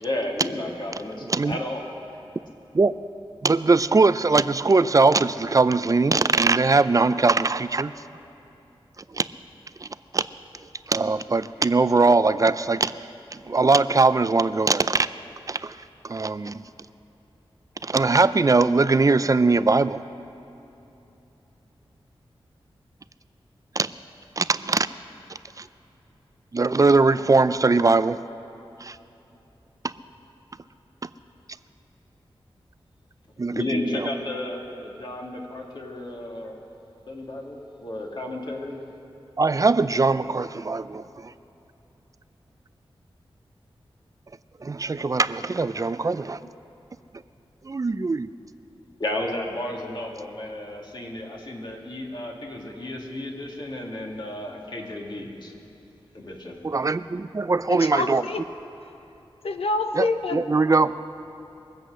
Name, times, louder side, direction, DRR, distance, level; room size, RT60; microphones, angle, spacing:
voice 1, 0.0-1.9 33.5-36.6 37.1-38.8 49.0-55.5 56.1-56.6, left 1 dB, 50° left, -1 dB, 2.3 m, -32 dB
voice 2, 1.2-1.6 2.7-2.9 3.4-7.9 9.1-9.2 9.8-9.9 10.1-10.2 10.9-12.9 13.5-15.1 15.5-15.7 16.0-16.6 17.8-20.0 23.8-23.9 24.4-24.9 25.6-25.7 26.5-28.2 28.8-29.0 33.4-34.1 39.4-41.3 44.6-46.4 47.6-48.3 56.6-58.2 60.0-60.1 60.3-60.9, right 3 dB, 35° right, 14 dB, 0.5 m, -21 dB
voice 3, 57.7-58.4 58.8-58.9 59.4-60.4, left 3 dB, 85° left, 7 dB, 0.8 m, -27 dB
22.5 x 8.1 x 6.4 m, 2.9 s
wide cardioid pair, 60°, 10 cm